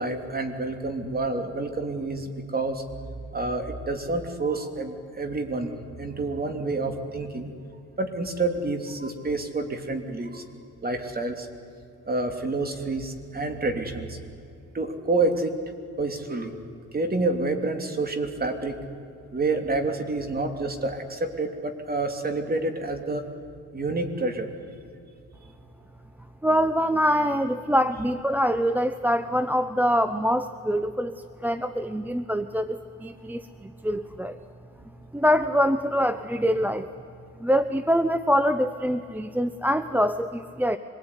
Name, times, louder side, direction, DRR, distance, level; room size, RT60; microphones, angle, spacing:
voice 1, 0.0-2.8 3.1-5.7 6.0-7.5 8.0-10.4 10.8-11.5 12.1-14.2 14.7-15.6 16.0-16.6 16.9-18.8 19.3-23.3 23.7-24.5, right 2 dB, 30° right, 6 dB, 3.1 m, -28 dB
voice 2, 26.4-31.1 31.4-34.4 35.1-36.9 37.4-40.8, equal, 5° right, 11 dB, 0.8 m, -24 dB
25.5 x 21.0 x 9.9 m, 2.5 s
cardioid pair, 90°, 30 cm